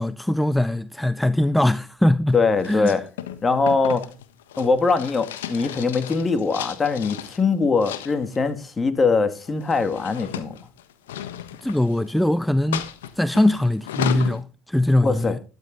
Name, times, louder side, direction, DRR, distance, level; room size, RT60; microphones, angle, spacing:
voice 1, 0.0-2.4 2.6-3.0 11.6-15.4, left 1 dB, 5° left, 0.6 m, -21 dB
voice 2, 2.3-3.0 3.4-4.0 4.6-10.6 15.0-15.3, left 4 dB, 25° left, 2.1 m, -22 dB
sound 1, 2.6-7.4 7.8-8.5 9.4-12.2 12.7-14.4, left 11 dB, 85° left, 1.3 m, -34 dB
12.0 x 12.0 x 4.0 m
hypercardioid pair, 70°, 0 cm